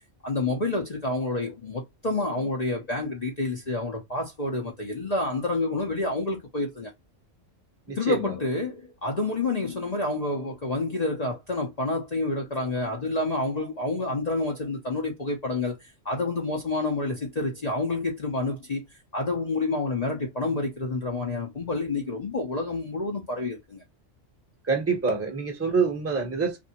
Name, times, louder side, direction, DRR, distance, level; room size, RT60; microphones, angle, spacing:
voice 1, 0.2-6.9 7.9-15.8 16.0-18.8 19.1-23.8, left 2 dB, 40° left, 0.8 m, -28 dB
voice 2, 7.9-8.3 24.6-26.6, right 5 dB, 15° right, 0.8 m, -26 dB
3.3 x 2.6 x 2.8 m
omnidirectional pair, 1.3 m